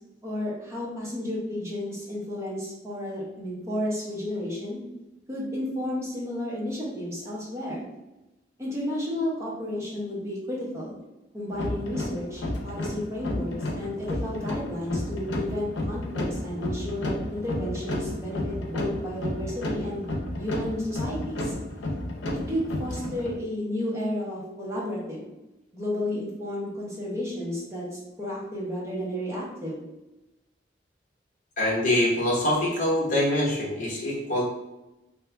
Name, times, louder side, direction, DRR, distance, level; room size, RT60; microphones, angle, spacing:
voice 1, 0.2-4.8 5.3-7.9 8.6-11.0 11.3-20.1 20.4-21.5 22.5-25.2 25.7-29.8, left 1 dB, 15° right, -5 dB, 0.8 m, -32 dB
sound 1, 11.5-23.4, left 1 dB, 85° left, 0.6 m, -32 dB
voice 2, 31.6-34.4, left 1 dB, 45° left, -4 dB, 1.1 m, -24 dB
2.6 x 2.3 x 3.3 m, 0.98 s
head